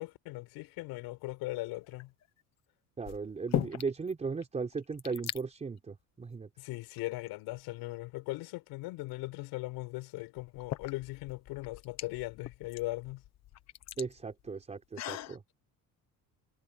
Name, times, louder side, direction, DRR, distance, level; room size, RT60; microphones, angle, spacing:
voice 1, 0.0-2.1 6.6-13.2, left 20 dB, 75° left, 6.8 m, -39 dB
sound 1, 1.8-2.3 3.0-4.1 4.4-4.5 4.7-5.4 6.2-6.4 7.0-7.9 9.6-9.7 10.4-15.4, left 12 dB, 45° left, 1.3 m, -39 dB
voice 2, 3.0-6.5 14.0-15.4, right 4 dB, 20° right, 4.0 m, -37 dB
cardioid pair, 165°, 37 cm